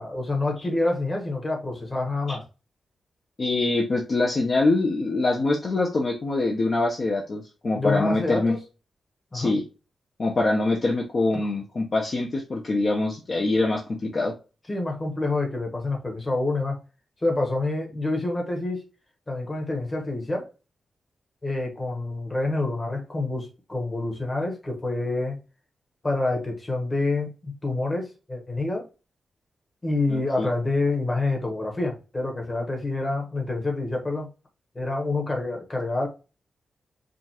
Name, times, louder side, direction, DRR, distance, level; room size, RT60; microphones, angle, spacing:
voice 1, 0.0-2.4 7.8-8.6 9.3-9.5 11.3-11.5 14.7-16.8 17.2-18.8 19.3-20.5 21.4-25.4 26.0-28.8 29.8-34.3 34.7-36.1, left 2 dB, 20° left, 1.2 m, -27 dB
voice 2, 3.4-8.6 9.3-9.6 10.2-14.3 30.1-30.5, left 2 dB, 40° left, 0.8 m, -24 dB
5.0 x 2.4 x 2.9 m
wide cardioid pair, 150°, 0 cm